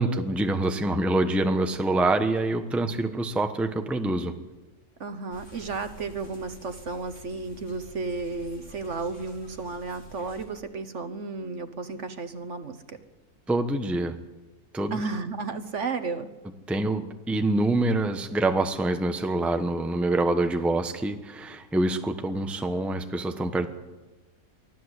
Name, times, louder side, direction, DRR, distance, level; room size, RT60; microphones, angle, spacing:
voice 1, 0.0-4.4 13.5-14.1 14.7-15.0 16.7-23.7, right 2 dB, ahead, 7 dB, 0.9 m, -26 dB
voice 2, 5.0-13.0 14.9-16.3, right 4 dB, 50° right, 10 dB, 1.3 m, -33 dB
sound 1, 5.3-10.5, equal, 50° left, 4.2 m, -49 dB
24.0 x 15.0 x 8.2 m, 1.2 s
omnidirectional pair, 1.7 m